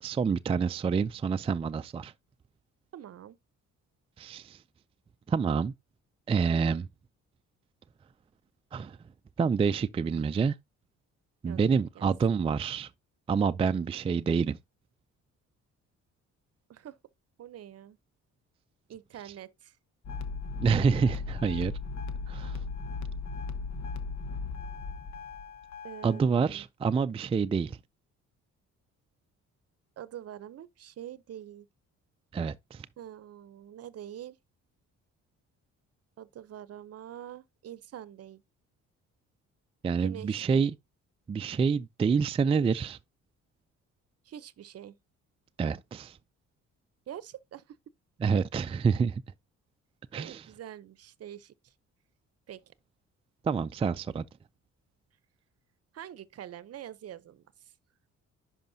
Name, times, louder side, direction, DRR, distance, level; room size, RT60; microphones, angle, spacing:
voice 1, 0.0-2.1 4.2-4.6 5.3-5.7 6.3-6.9 8.7-9.0 9.4-10.6 11.4-12.9 13.3-14.6 20.6-21.7 22.3-22.6 26.0-27.8 32.3-32.9 39.8-40.7 41.3-43.0 45.6-46.2 48.2-49.2 50.1-50.5 53.4-54.2, right 5 dB, 20° right, 0.3 m, -27 dB
voice 2, 2.9-3.4 11.5-12.1 16.7-17.0 17.4-18.0 18.9-19.8 25.8-26.7 30.0-31.7 33.0-34.4 36.2-38.4 40.0-40.7 44.2-45.0 47.1-47.8 50.1-51.7 52.5-52.7 55.9-57.7, right 11 dB, 55° right, 0.7 m, -45 dB
sound 1, 20.0-26.2, left 4 dB, 65° left, 1.0 m, -37 dB
10.5 x 5.0 x 2.7 m
cardioid pair, 90°, 30 cm